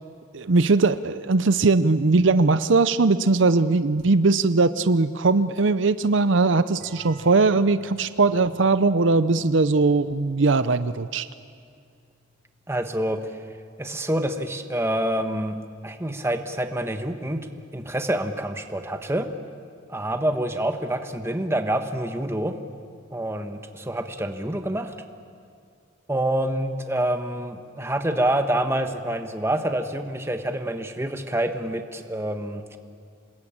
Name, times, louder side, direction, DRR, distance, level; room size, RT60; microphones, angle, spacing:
voice 1, 0.3-11.3, right 3 dB, 65° right, 13 dB, 0.6 m, -20 dB
sound 1, 6.8-12.3, right 1 dB, 50° right, 4.4 m, -50 dB
voice 2, 12.7-13.4 13.8-15.6 15.8-17.4 17.7-19.3 19.9-22.5 23.1-24.9 26.1-32.8, right 1 dB, 15° right, 6 dB, 1.3 m, -27 dB
27.5 x 21.0 x 8.8 m, 2.3 s
head